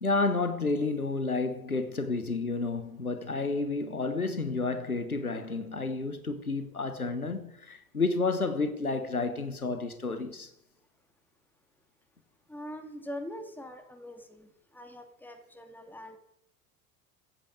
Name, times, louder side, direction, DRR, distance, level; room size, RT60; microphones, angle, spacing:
voice 1, 0.0-10.5, left 3 dB, 90° left, 1.2 m, -30 dB
voice 2, 12.5-16.2, equal, 5° left, 2.4 m, -43 dB
14.5 x 8.6 x 7.7 m
figure-of-eight pair, 75°, 42 cm